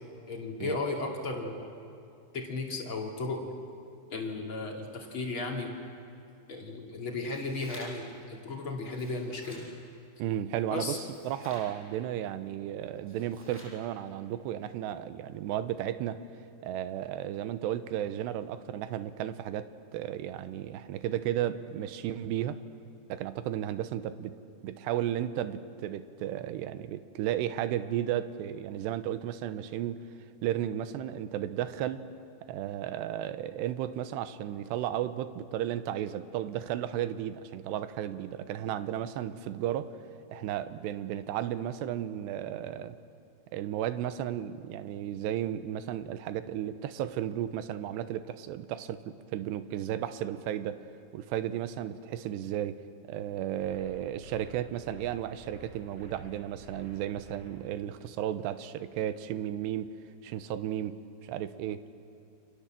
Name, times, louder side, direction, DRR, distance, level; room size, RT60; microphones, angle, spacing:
voice 1, 0.3-1.7 2.3-3.4 4.1-5.7 6.5-9.7 10.7-11.0, left 3 dB, 35° left, 0 dB, 2.5 m, -35 dB
sound 1, 7.2-8.1 8.8-9.7 10.8-11.7 13.0-13.8, equal, ahead, 7.4 m, -51 dB
voice 2, 10.2-16.2 16.6-22.6 23.1-24.4 24.6-30.0 30.4-32.0 32.5-39.9 40.3-43.0 43.5-50.8 51.1-52.8 53.1-59.9 60.2-61.8, right 11 dB, 75° right, 12 dB, 2.8 m, -34 dB
sound 2, 53.6-57.5, left 1 dB, 20° right, 7.0 m, -51 dB
29.5 x 26.0 x 7.6 m, 2.6 s
omnidirectional pair, 5.4 m